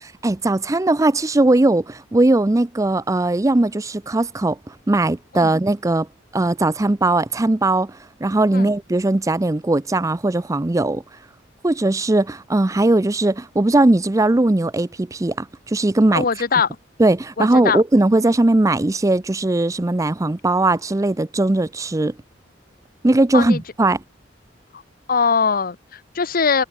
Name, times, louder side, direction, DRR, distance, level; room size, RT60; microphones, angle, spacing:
voice 1, 0.2-6.1 6.3-11.0 11.6-16.3 17.0-22.1 23.0-24.0, right 2 dB, 15° right, 0.5 m, -19 dB
voice 2, 16.1-16.7 17.4-17.8 23.3-23.6 24.7-24.8 25.1-26.6, left 5 dB, 45° left, 0.8 m, -21 dB
head